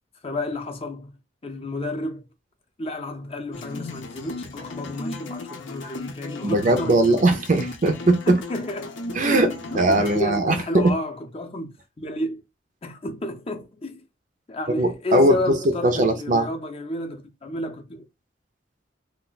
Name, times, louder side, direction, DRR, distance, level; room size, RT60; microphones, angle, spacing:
voice 1, 0.2-2.2 2.8-7.2 8.3-9.0 9.3-12.4 12.8-14.1 14.5-18.0, left 1 dB, 30° left, 0.6 m, -31 dB
sound 1, 3.5-10.2, left 2 dB, 75° left, 0.6 m, -36 dB
voice 2, 6.4-8.4 9.2-9.5 9.7-11.0 14.7-15.6 15.8-16.5, right 2 dB, 45° right, 0.5 m, -20 dB
2.4 x 2.1 x 3.9 m
head